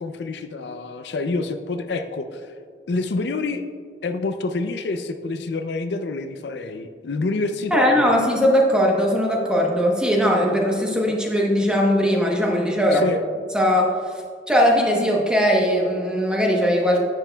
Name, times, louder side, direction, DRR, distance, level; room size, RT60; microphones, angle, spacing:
voice 1, 0.0-2.5 2.9-3.6 4.0-8.2 12.9-13.2, left 3 dB, 70° left, 8 dB, 0.4 m, -27 dB
voice 2, 7.7-13.1 13.5-14.0 14.5-17.0, equal, 5° right, -1 dB, 0.9 m, -19 dB
10.5 x 8.0 x 2.2 m, 2.1 s
head